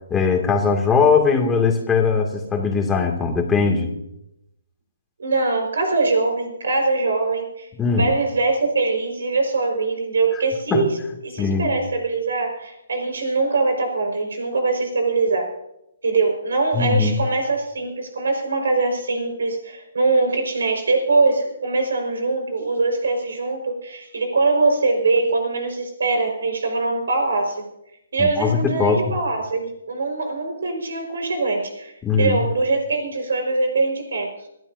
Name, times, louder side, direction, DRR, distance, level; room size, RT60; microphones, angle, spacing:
voice 1, 0.1-3.9 7.8-8.1 10.7-10.8 11.4-11.7 16.7-17.2 28.2-29.0 32.0-32.4, left 5 dB, 10° left, 1 dB, 2.3 m, -20 dB
voice 2, 5.2-11.0 11.2-15.5 16.0-27.7 28.1-34.3, right 3 dB, 80° right, 4 dB, 4.9 m, -22 dB
26.0 x 12.5 x 2.7 m, 0.83 s
hypercardioid pair, 155°, 0 cm